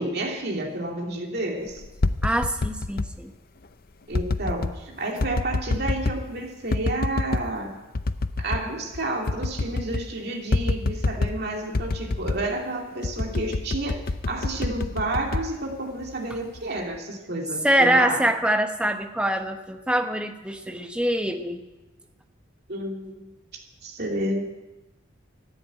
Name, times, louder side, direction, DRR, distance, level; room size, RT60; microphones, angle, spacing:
voice 1, 0.0-1.8 4.1-7.7 8.4-18.3 22.7-23.3 23.8-24.4, right 1 dB, 50° right, 1 dB, 2.6 m, -30 dB
sound 1, 1.8-3.1 4.1-4.8 5.2-6.3 6.7-7.5 7.9-8.7 8.9-9.0 9.3-10.1 10.5-11.4 11.7-12.5 13.0-16.1 16.6-17.0, left 3 dB, 45° left, 0.6 m, -27 dB
voice 2, 2.2-3.3 17.6-21.6, right 1 dB, 5° right, 5 dB, 1.1 m, -24 dB
14.0 x 10.5 x 9.2 m, 1.1 s
head